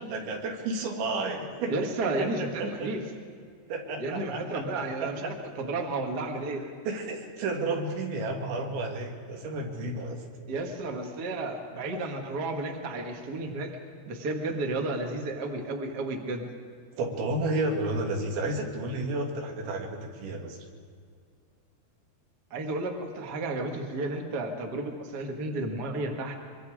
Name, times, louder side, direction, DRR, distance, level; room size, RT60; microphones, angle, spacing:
voice 1, 0.0-1.7 2.2-2.3 2.6-2.9 3.7-5.3 6.9-10.2 17.0-20.6, right 2 dB, 75° right, 2 dB, 4.5 m, -32 dB
voice 2, 1.6-3.0 4.0-6.6 10.5-13.7 14.1-16.5 22.5-26.3, right 2 dB, 45° right, 2 dB, 1.2 m, -32 dB
24.0 x 24.0 x 5.1 m, 2.2 s
omnidirectional pair, 5.3 m